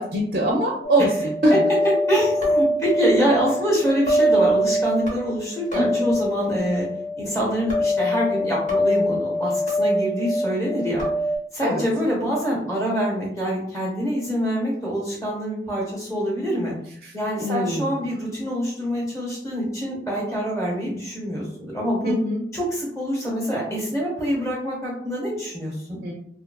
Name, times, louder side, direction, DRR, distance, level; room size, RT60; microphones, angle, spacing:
voice 1, 0.0-1.6 5.7-6.1 11.6-11.8 17.0-17.1 17.4-17.9 22.0-22.4 26.0-26.1, equal, 55° right, -1 dB, 0.4 m, -23 dB
sound 1, 0.8-11.4, equal, 45° left, 0.7 m, -24 dB
voice 2, 2.1-6.9 7.2-11.0 11.5-16.7 17.1-22.1 22.5-26.0, equal, 20° left, -5 dB, 1.0 m, -25 dB
2.6 x 2.4 x 2.2 m, 0.70 s
head